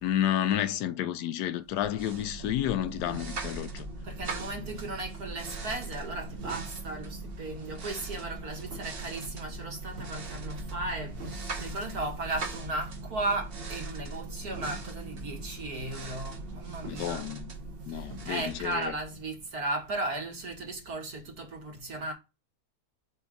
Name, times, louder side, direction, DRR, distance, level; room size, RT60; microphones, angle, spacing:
voice 1, 0.0-3.9 16.9-17.5 17.9-18.9, left 11 dB, 80° left, 1.2 m, -30 dB
sound 1, 1.7-19.5, right 2 dB, 40° right, 1.0 m, -40 dB
voice 2, 4.0-17.2 17.9-22.1, right 2 dB, 60° right, 2.4 m, -36 dB
6.2 x 3.7 x 5.2 m
omnidirectional pair, 1.8 m